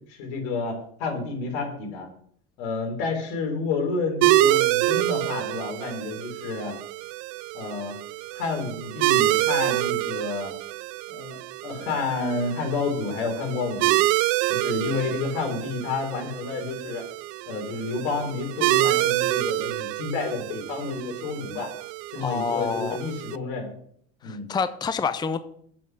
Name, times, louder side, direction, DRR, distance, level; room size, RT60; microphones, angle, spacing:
voice 1, 0.1-2.1 2.6-6.7 7.5-8.0 8.3-10.5 11.1-14.0 14.5-17.0 17.5-21.7 22.1-23.7 24.2-24.5, left 4 dB, 75° left, 2 dB, 3.9 m, -30 dB
sound 1, 4.2-23.4, right 19 dB, 65° right, 0.5 m, -27 dB
voice 2, 22.2-23.0 24.2-25.4, left 5 dB, 15° left, 12 dB, 0.5 m, -27 dB
8.0 x 7.6 x 6.0 m, 0.65 s
supercardioid pair, 100°, 33 cm